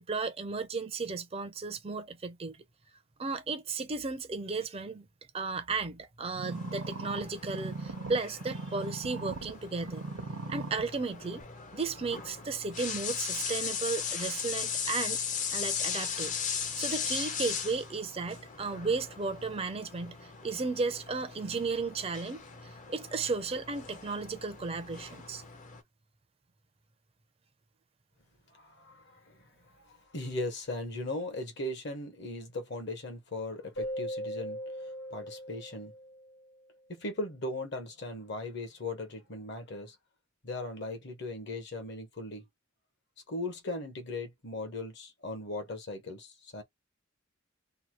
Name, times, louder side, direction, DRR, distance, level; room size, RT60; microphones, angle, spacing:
voice 1, 0.0-2.6 3.2-5.1 5.3-10.1 10.5-11.4 11.7-15.2 15.5-25.4, right 4 dB, 30° right, 0.5 m, -34 dB
sound 1, 6.4-9.5 9.8-10.8 11.4-11.5, right 3 dB, 90° right, 0.8 m, -39 dB
sound 2, 6.5-25.8, left 6 dB, 40° left, 0.6 m, -38 dB
voice 2, 28.5-29.4 29.8-34.6 35.1-35.9 36.9-39.9 40.4-42.4 43.3-46.6, left 2 dB, 55° left, 1.1 m, -38 dB
Keyboard (musical), 33.8-36.5, equal, 75° left, 1.2 m, -39 dB
2.8 x 2.2 x 3.0 m
head